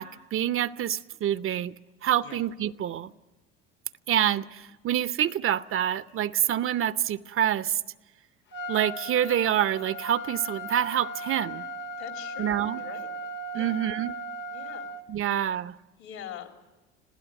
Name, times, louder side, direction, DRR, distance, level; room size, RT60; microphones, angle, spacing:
voice 1, 0.0-1.7 2.0-3.1 4.1-7.8 8.7-11.6 12.4-12.8 13.5-14.2 15.1-15.7, right 11 dB, 45° right, 0.7 m, -27 dB
Trumpet, 8.5-15.0, equal, 40° left, 1.2 m, -37 dB
voice 2, 12.0-13.1 13.5-13.8 14.5-14.9 15.3-15.4 16.0-16.6, left 9 dB, 65° left, 3.5 m, -43 dB
26.5 x 16.0 x 9.2 m
hypercardioid pair, 75°, 31 cm